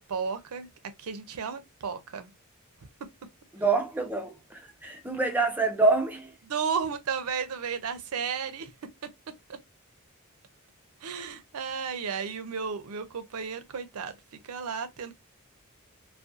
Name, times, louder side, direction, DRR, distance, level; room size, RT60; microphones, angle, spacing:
voice 1, 0.1-0.7 1.0-2.3 6.5-8.7 11.0-14.1 14.4-15.1, right 6 dB, 85° right, 0.5 m, -33 dB
voice 2, 3.5-6.3, right 3 dB, 10° right, 0.4 m, -26 dB
2.4 x 2.2 x 2.5 m
head